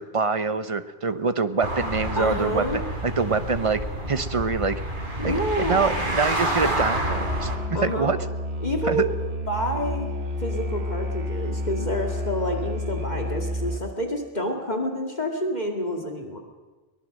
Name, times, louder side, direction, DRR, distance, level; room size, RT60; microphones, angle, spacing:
voice 1, 0.0-2.6 3.0-3.8 4.1-4.8 5.2-8.2 8.8-9.1, right 4 dB, 30° right, 11 dB, 0.9 m, -25 dB
sound 1, 1.6-7.6, right 1 dB, 50° right, 3.9 m, -28 dB
voice 2, 2.1-2.8 5.2-6.1 7.7-8.1 8.6-9.1 9.5-10.1 10.4-16.4, equal, 40° left, 2 dB, 2.3 m, -28 dB
Musical instrument, 6.9-14.0, left 1 dB, 70° right, 1.9 m, -30 dB
23.5 x 19.5 x 6.5 m, 1.2 s
omnidirectional pair, 1.1 m